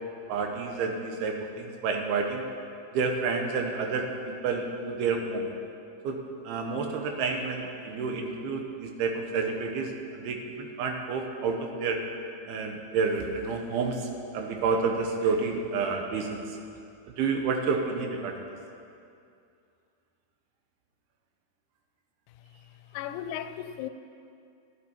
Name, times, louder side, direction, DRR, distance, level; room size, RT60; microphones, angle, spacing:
voice 1, 0.3-2.4 2.9-5.5 6.0-6.2 6.5-12.0 12.5-16.4 17.2-18.4, right 4 dB, 80° right, 2.8 m, -29 dB
voice 2, 22.9-23.9, left 10 dB, 90° left, 2.6 m, -35 dB
13.0 x 9.7 x 4.4 m
omnidirectional pair, 4.5 m